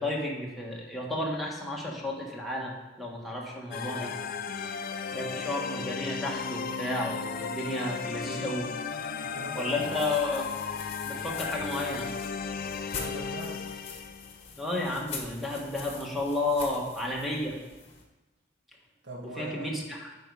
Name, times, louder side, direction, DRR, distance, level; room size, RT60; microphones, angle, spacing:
voice 1, 0.0-4.1 5.1-8.7 9.5-10.5 11.0-12.1 14.6-17.6 19.2-20.1, left 2 dB, ahead, -2 dB, 1.4 m, -32 dB
sound 1, 3.7-14.5, left 6 dB, 50° left, 0.5 m, -35 dB
voice 2, 9.2-9.9 12.9-13.6 19.0-19.7, right 1 dB, 60° right, -2 dB, 1.9 m, -41 dB
sound 2, 9.4-18.0, left 5 dB, 35° left, 1.3 m, -44 dB
9.0 x 5.3 x 4.8 m, 1.1 s
head